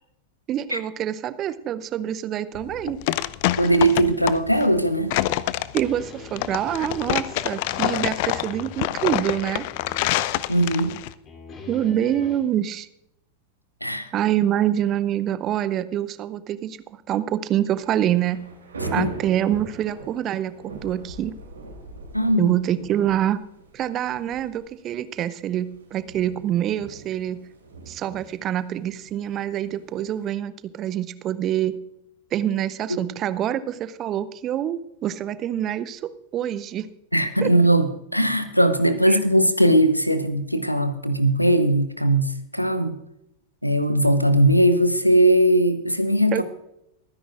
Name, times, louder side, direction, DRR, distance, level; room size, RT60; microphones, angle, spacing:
voice 1, 0.5-3.0 5.7-9.7 11.7-12.9 14.1-18.4 18.9-21.3 22.4-23.4 23.7-27.4 27.9-31.8 32.3-36.9 37.4-37.5 39.1-39.2 46.3-46.4, right 11 dB, 30° right, 15 dB, 0.6 m, -26 dB
sound 1, 2.5-11.1, left 16 dB, 50° left, 0.4 m, -26 dB
voice 2, 3.6-5.1 10.5-10.9 13.8-14.1 19.0-19.1 22.1-22.5 37.1-43.0 43.6-46.4, right 1 dB, 90° left, 11 dB, 0.9 m, -19 dB
sound 2, 5.8-9.5 9.7-11.0 11.3-12.4, left 3 dB, 30° left, 2.7 m, -43 dB
Thunder / Rain, 17.6-30.3, right 2 dB, 75° right, 2.8 m, -41 dB
23.0 x 10.0 x 2.5 m, 0.81 s
figure-of-eight pair, 90°, 0 cm